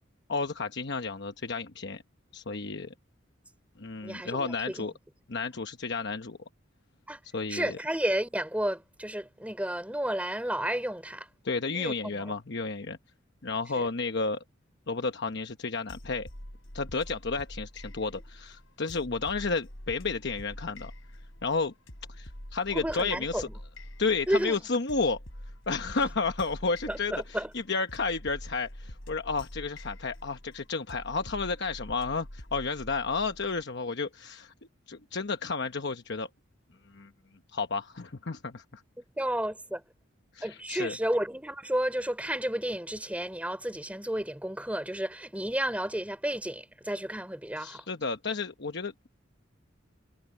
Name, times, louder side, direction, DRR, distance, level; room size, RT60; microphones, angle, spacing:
voice 1, 0.3-2.0 2.3-2.9 3.8-4.9 5.3-6.4 7.3-7.8 11.4-13.0 13.4-14.4 14.9-16.3 16.7-20.9 21.4-21.7 22.1-23.5 24.0-25.2 25.7-34.5 34.9-36.3 36.9-37.1 37.5-38.8 40.3-41.0 47.6-49.1, left 4 dB, 60° left, 1.0 m, -32 dB
voice 2, 4.0-4.9 7.1-7.2 7.5-11.3 11.7-12.3 13.8-13.9 22.7-23.4 24.3-24.6 26.9-27.5 39.2-39.8 40.4-47.8, right 1 dB, 5° right, 3.6 m, -32 dB
sound 1, 15.9-33.6, left 1 dB, 80° left, 6.4 m, -46 dB
head